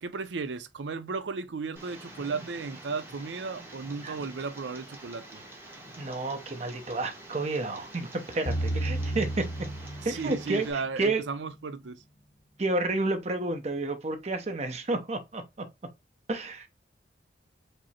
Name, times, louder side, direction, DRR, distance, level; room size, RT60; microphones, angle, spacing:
voice 1, 0.0-5.4 10.0-12.0, right 4 dB, 90° right, 0.5 m, -35 dB
Tick, 1.8-10.7, right 1 dB, 15° right, 0.9 m, -47 dB
voice 2, 6.0-9.5 10.0-11.2 12.6-15.7 16.3-16.7, right 2 dB, 40° right, 0.7 m, -30 dB
sound 1, 8.5-10.9, right 1 dB, 50° left, 0.6 m, -32 dB
5.0 x 2.0 x 4.2 m
head